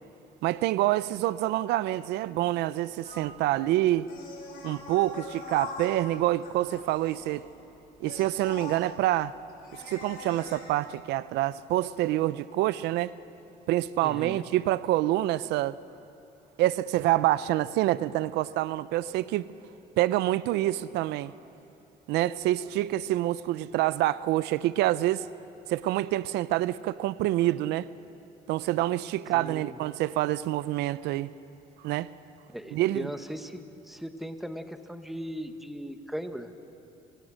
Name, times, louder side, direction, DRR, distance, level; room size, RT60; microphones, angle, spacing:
voice 1, 0.4-4.1 4.6-7.4 8.0-9.3 9.9-13.1 13.7-15.8 16.6-19.5 20.0-21.3 22.1-25.3 25.7-27.9 28.5-31.3 31.8-32.1 32.7-33.1, right 15 dB, 85° right, 0.6 m, -27 dB
sound 1, 3.0-10.6, left 4 dB, 60° left, 7.1 m, -43 dB
voice 2, 14.0-14.4 29.3-29.8 32.5-36.5, equal, ahead, 1.5 m, -38 dB
29.5 x 25.5 x 6.4 m
cardioid pair, 110°, 17 cm